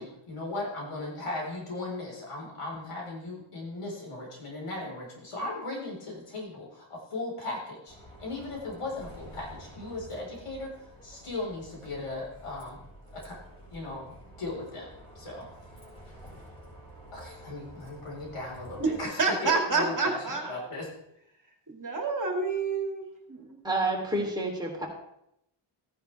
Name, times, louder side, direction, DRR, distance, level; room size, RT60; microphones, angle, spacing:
voice 1, 0.0-12.8 13.1-13.4 13.7-14.9 15.1-15.5 17.1-20.9, left 2 dB, 90° left, -2 dB, 4.5 m, -37 dB
Bus, 7.9-19.0, right 1 dB, 10° left, 4.8 m, -50 dB
voice 2, 19.2-20.6 21.7-23.0 23.3-23.6, right 4 dB, 40° right, 2 dB, 2.3 m, -28 dB
voice 3, 23.6-24.9, right 2 dB, 10° right, -2 dB, 3.2 m, -29 dB
15.5 x 9.9 x 3.4 m, 0.79 s
wide cardioid pair, 110°, 50 cm